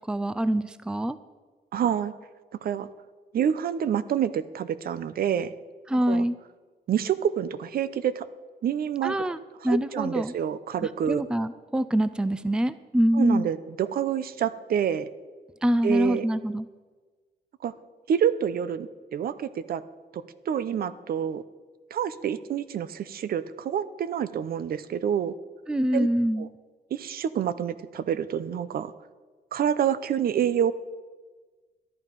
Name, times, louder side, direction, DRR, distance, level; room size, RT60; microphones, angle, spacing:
voice 1, 0.1-1.2 5.9-6.4 9.0-9.4 9.6-10.3 10.8-13.5 15.6-16.7 25.7-26.5, equal, 5° right, 14 dB, 0.5 m, -25 dB
voice 2, 1.7-2.1 2.6-2.9 3.3-5.5 6.1-6.3 6.9-8.2 8.6-9.1 9.6-11.2 13.1-15.1 15.8-16.3 17.6-17.7 18.1-19.8 20.1-21.4 21.9-25.3 25.9-26.1 26.4-26.5 26.9-28.9 29.5-30.7, right 9 dB, 65° right, 15 dB, 0.7 m, -27 dB
14.0 x 11.0 x 5.3 m, 1.4 s
cardioid pair, 105°, 17 cm